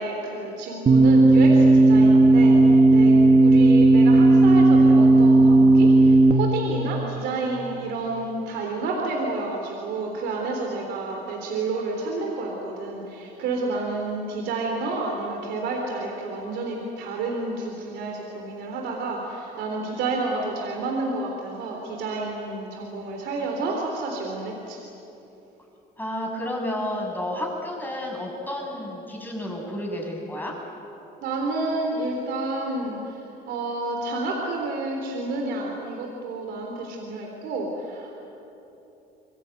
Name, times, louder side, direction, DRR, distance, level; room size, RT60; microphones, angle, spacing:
voice 1, 0.0-24.8 31.2-38.1, right 3 dB, 80° right, 1 dB, 3.7 m, -30 dB
sound 1, 0.9-6.3, right 2 dB, 35° right, 1.4 m, -14 dB
voice 2, 26.0-30.6, left 1 dB, 10° left, -1 dB, 7.1 m, -31 dB
25.5 x 21.5 x 9.2 m, 3.0 s
cardioid pair, 110°, 17 cm